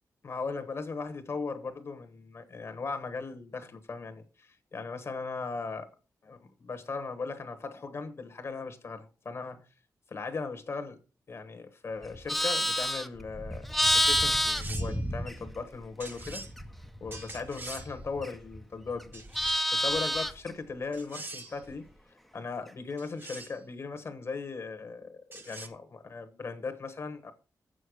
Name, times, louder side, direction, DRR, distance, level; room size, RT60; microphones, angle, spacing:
voice 1, 0.2-5.9 6.2-9.6 10.1-11.0 11.3-13.7 13.9-16.4 17.0-19.2 19.7-21.9 22.3-27.3, left 4 dB, 40° left, 1.1 m, -38 dB
Livestock farm animals working animals, 12.0-15.7 16.1-18.6 18.9-20.5, equal, ahead, 0.6 m, -29 dB
sound 1, 14.3-15.1 16.0-16.5 17.1-17.9 19.1-19.8 20.9-21.6 23.0-23.6 25.3-25.7, right 2 dB, 30° right, 1.1 m, -44 dB
7.7 x 6.4 x 6.3 m
wide cardioid pair, 180°, 7 cm